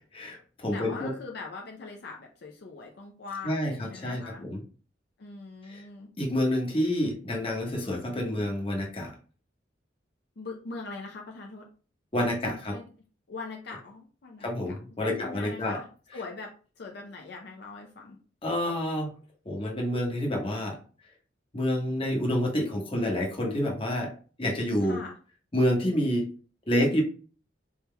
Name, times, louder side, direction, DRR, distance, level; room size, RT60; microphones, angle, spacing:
voice 1, 0.1-1.1 3.4-4.6 5.7-5.8 6.2-9.1 12.1-12.7 14.4-15.8 18.4-19.1 19.4-20.7 21.5-24.1 24.4-25.0 25.5-26.3 26.7-27.0, left 1 dB, 30° left, -1 dB, 1.1 m, -28 dB
voice 2, 0.7-4.4 5.2-6.1 10.4-11.7 12.2-12.9 13.3-15.9 16.1-18.2 24.8-25.2, left 4 dB, 65° left, 0 dB, 0.6 m, -42 dB
4.3 x 3.6 x 2.2 m, 0.39 s
head